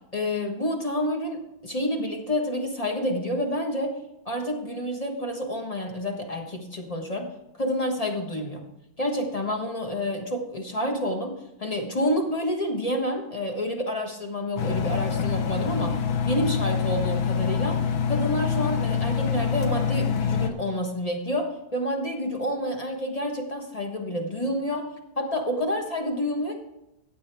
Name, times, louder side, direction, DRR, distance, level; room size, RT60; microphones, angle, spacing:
voice 1, 0.1-4.0 4.2-7.3 7.6-8.6 9.0-16.0 16.2-17.8 18.1-24.9 25.2-26.6, equal, 20° left, 2 dB, 1.2 m, -28 dB
Engine, 14.6-20.5, left 6 dB, 85° left, 1.7 m, -25 dB
15.5 x 8.7 x 3.5 m, 0.91 s
omnidirectional pair, 2.1 m